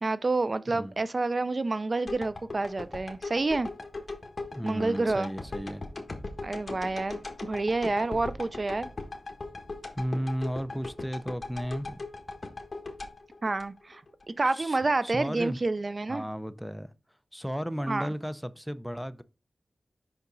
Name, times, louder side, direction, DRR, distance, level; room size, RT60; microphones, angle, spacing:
voice 1, 0.0-3.7 4.6-5.3 6.4-8.9 13.4-14.0 14.4-16.2 17.9-18.1, right 3 dB, 50° right, 0.4 m, -28 dB
sound 1, 2.1-14.2 14.7-14.8, left 3 dB, 50° left, 1.4 m, -39 dB
voice 2, 4.5-5.9 10.0-12.0 14.4-15.6 16.1-16.9 17.3-19.2, equal, ahead, 0.5 m, -34 dB
5.7 x 5.6 x 3.9 m
cardioid pair, 50°, 0 cm